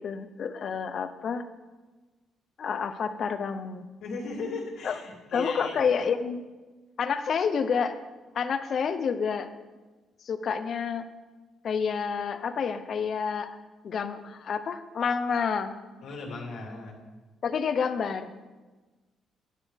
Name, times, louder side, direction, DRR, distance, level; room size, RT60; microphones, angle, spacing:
voice 1, 0.0-1.4 2.6-3.9 4.8-4.9 5.3-6.4 7.0-8.0 8.3-9.5 10.2-11.1 11.6-13.6 13.8-15.8 17.4-18.3, left 6 dB, 55° left, 10 dB, 0.7 m, -29 dB
voice 2, 4.0-6.0 16.0-17.0, left 3 dB, 80° left, -2 dB, 2.4 m, -37 dB
10.0 x 9.6 x 3.6 m, 1.3 s
cardioid pair, 90°, 0 cm